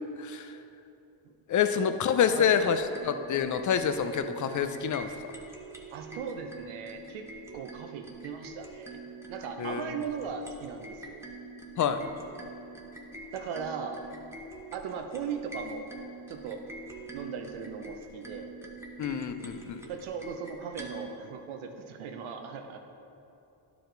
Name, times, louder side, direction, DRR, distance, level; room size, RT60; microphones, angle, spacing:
voice 1, 0.2-0.5 1.5-5.1 9.6-9.9 11.8-12.1 19.0-19.8, left 7 dB, 40° left, 9 dB, 0.5 m, -27 dB
sound 1, 2.2-21.1, right 3 dB, 5° right, 0.9 m, -45 dB
voice 2, 5.9-7.3 7.5-9.0 9.3-11.2 13.3-14.0 14.7-15.9 16.3-16.7 17.1-18.5 19.9-22.8, right 6 dB, 90° right, 5 dB, 0.8 m, -38 dB
11.5 x 4.9 x 3.9 m, 2.8 s
cardioid pair, 90°, 47 cm